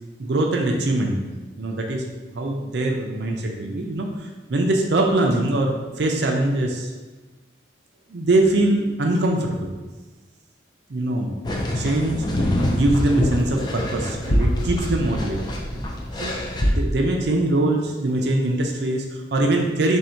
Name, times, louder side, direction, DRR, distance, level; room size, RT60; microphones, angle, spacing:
voice 1, 0.2-1.2 1.6-6.9 8.1-9.8 10.9-11.4 11.8-12.5 12.7-15.4 16.2-16.3 16.7-20.0, right 2 dB, 60° right, 2 dB, 0.5 m, -22 dB
sound 1, 11.4-16.7, equal, 20° left, 0.4 m, -24 dB
3.4 x 2.7 x 4.3 m, 1.2 s
head